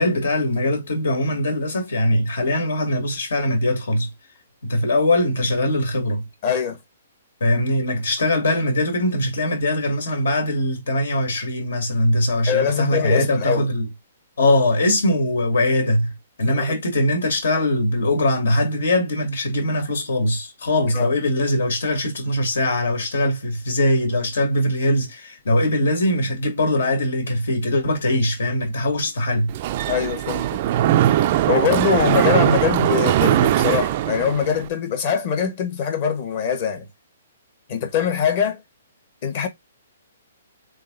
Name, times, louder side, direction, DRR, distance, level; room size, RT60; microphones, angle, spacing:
voice 1, 0.0-4.1 4.6-6.3 7.4-13.9 14.4-16.1 16.4-29.5, left 1 dB, 75° left, 2.0 m, -21 dB
voice 2, 6.4-6.8 12.5-13.7 16.5-16.8 20.9-21.1 29.9-30.6 31.5-36.8 37.7-38.6 39.2-39.5, left 7 dB, 35° left, 1.1 m, -23 dB
Mechanisms, 29.5-34.7, right 12 dB, 30° right, 0.3 m, -20 dB
3.8 x 3.4 x 3.8 m
hypercardioid pair, 170°, 0 cm